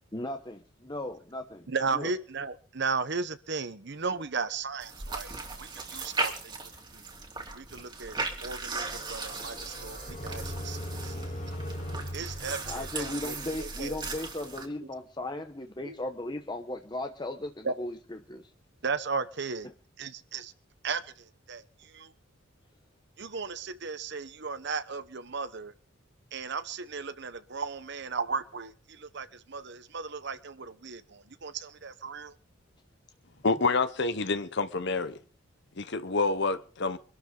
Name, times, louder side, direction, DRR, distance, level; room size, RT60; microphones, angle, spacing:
voice 1, 0.1-2.1 12.7-18.5 19.6-19.7, left 1 dB, 20° left, 1.0 m, -37 dB
voice 2, 1.7-6.5 6.9-7.0 7.5-11.3 12.1-13.9 15.8-15.9 17.6-17.7 18.8-19.7 20.0-20.5 20.8-22.1 23.2-25.7 26.3-32.3, right 4 dB, 55° right, 1.0 m, -36 dB
sound 1, 4.8-14.7, right 3 dB, 20° right, 2.7 m, -37 dB
sound 2, 8.7-13.5, equal, 35° left, 3.9 m, -39 dB
voice 3, 33.4-35.2 35.8-37.0, left 3 dB, 55° left, 1.0 m, -28 dB
24.5 x 12.5 x 3.9 m
head